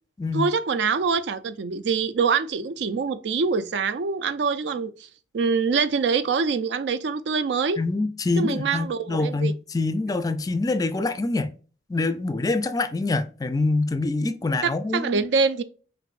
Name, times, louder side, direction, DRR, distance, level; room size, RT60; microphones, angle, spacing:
voice 1, 0.3-5.1 5.3-7.8 8.4-9.5 14.6-15.6, right 5 dB, 70° right, 0.4 m, -24 dB
voice 2, 7.8-11.5 11.9-15.2, left 3 dB, 20° left, 0.3 m, -25 dB
5.8 x 2.6 x 2.4 m
head